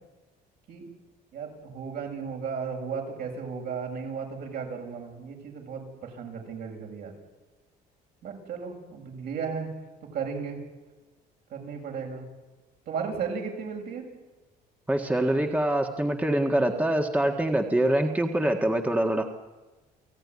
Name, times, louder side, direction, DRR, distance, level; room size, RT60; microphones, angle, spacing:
voice 1, 1.3-7.1 8.2-9.7 10.1-10.6 11.5-12.3 12.9-14.1, right 6 dB, 65° right, 1 dB, 7.4 m, -35 dB
voice 2, 14.9-19.3, right 1 dB, 10° right, 3 dB, 1.7 m, -24 dB
29.0 x 17.0 x 9.7 m, 1.2 s
cardioid pair, 110°, 17 cm